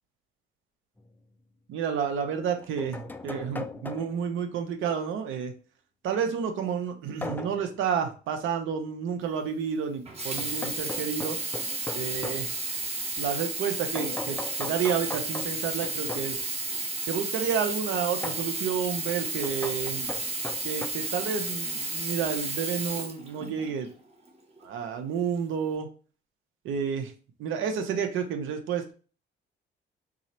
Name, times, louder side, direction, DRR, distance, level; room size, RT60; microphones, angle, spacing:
sound 1, 1.0-1.1 2.3-4.3 7.2-7.7 10.4-12.5 13.9-16.4 18.2-18.5 19.4-20.9, left 3 dB, 10° left, 0.3 m, -39 dB
voice 1, 1.7-5.5 6.0-11.4 11.9-12.5 13.2-16.4 17.1-20.1 20.6-23.9 24.6-25.9 26.6-27.1 27.4-28.9, right 7 dB, 80° right, 6 dB, 0.6 m, -30 dB
Sink (filling or washing), 10.1-23.8 24.6-24.7, right 3 dB, 30° right, 0.9 m, -32 dB
3.7 x 2.0 x 4.3 m, 0.37 s
cardioid pair, 90°, 20 cm